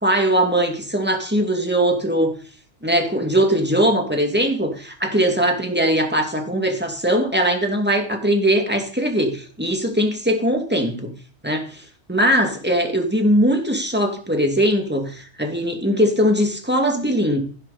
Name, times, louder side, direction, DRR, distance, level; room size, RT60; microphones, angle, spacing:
voice 1, 0.0-2.3 2.8-11.1 11.4-17.4, equal, 10° right, 3 dB, 2.5 m, -20 dB
15.5 x 11.0 x 4.3 m, 0.40 s
omnidirectional pair, 1.2 m